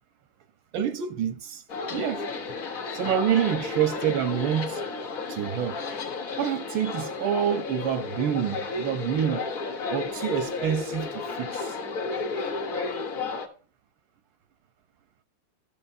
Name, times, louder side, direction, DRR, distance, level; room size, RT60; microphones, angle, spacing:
voice 1, 0.7-1.6 1.9-2.3 2.9-4.8 5.3-5.8 6.4-9.4 9.9-11.8, right 9 dB, 85° right, 1.5 m, -27 dB
sound 1, 1.7-13.5, left 4 dB, 50° left, 1.4 m, -33 dB
14.5 x 6.1 x 2.6 m
omnidirectional pair, 2.1 m